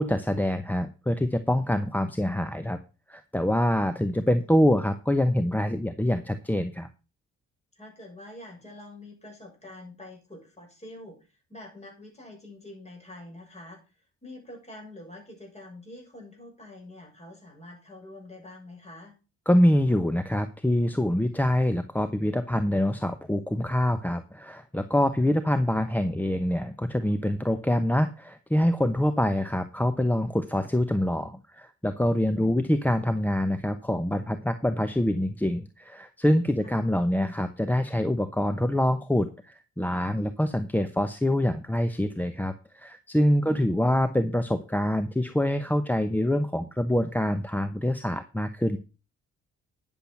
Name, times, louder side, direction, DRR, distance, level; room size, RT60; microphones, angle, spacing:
voice 1, 0.0-2.8 3.1-6.9 19.5-48.8, left 1 dB, 5° left, 10 dB, 0.8 m, -25 dB
voice 2, 7.7-11.2 11.5-13.8 14.2-19.1 32.3-32.6 36.6-36.7, left 1 dB, 20° left, 1 dB, 6.8 m, -46 dB
10.0 x 7.2 x 5.8 m, 0.32 s
cardioid pair, 90°, 30 cm